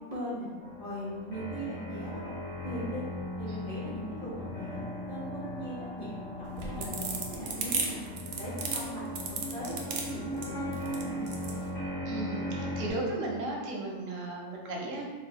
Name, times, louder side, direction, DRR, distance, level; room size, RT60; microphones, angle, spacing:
voice 1, 0.1-0.5 0.8-3.0 3.4-4.8 5.1-8.0 8.4-11.6, equal, 35° left, -9 dB, 1.4 m, -40 dB
sound 1, 0.6-12.9, left 1 dB, 80° left, 1.5 m, -38 dB
sound 2, 6.4-11.6, right 4 dB, 65° right, 0.7 m, -34 dB
voice 2, 12.1-15.1, right 2 dB, 90° right, -1 dB, 1.0 m, -35 dB
4.0 x 2.3 x 2.7 m, 1.4 s
omnidirectional pair, 1.3 m